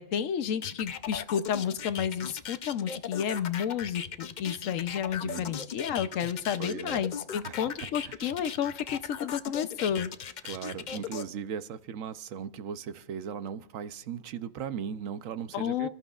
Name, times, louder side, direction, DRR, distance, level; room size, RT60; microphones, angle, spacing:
voice 1, 0.0-10.1 15.5-15.9, left 8 dB, 85° left, 1.1 m, -31 dB
sound 1, 0.6-11.2, left 7 dB, 50° left, 0.6 m, -38 dB
voice 2, 5.2-5.5 6.6-7.1 7.4-8.3 10.4-15.9, right 7 dB, 85° right, 1.1 m, -38 dB
29.5 x 13.5 x 2.4 m
omnidirectional pair, 1.3 m